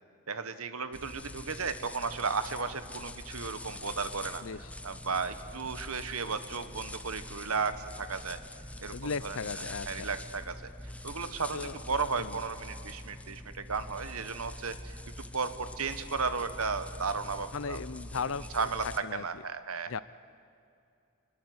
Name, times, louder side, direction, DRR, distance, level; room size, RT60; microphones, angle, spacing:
voice 1, 0.3-4.4 4.8-8.4 8.8-9.4 9.9-10.7 11.0-15.0 15.3-17.8 18.1-18.2 18.5-20.0, right 5 dB, 85° right, 11 dB, 1.4 m, -34 dB
sound 1, 0.9-19.0, left 1 dB, 5° left, 0.7 m, -44 dB
voice 2, 8.9-10.1 11.5-11.8 12.2-12.4 17.5-18.7 19.0-19.4 19.9-20.0, left 5 dB, 65° left, 18 dB, 0.6 m, -37 dB
25.5 x 21.0 x 9.6 m, 2.5 s
head